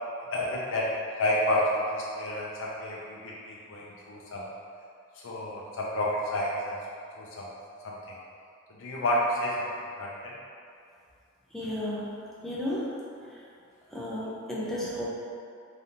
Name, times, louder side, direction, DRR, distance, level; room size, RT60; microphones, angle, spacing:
voice 1, 0.3-4.4 5.2-6.8 7.2-7.5 7.8-8.0 8.8-9.7 10.0-10.3, left 1 dB, 70° left, -4 dB, 0.5 m, -30 dB
voice 2, 11.5-12.8 13.2-13.4 13.9-15.0, left 1 dB, ahead, -8 dB, 0.8 m, -34 dB
4.1 x 3.5 x 2.8 m, 2.4 s
head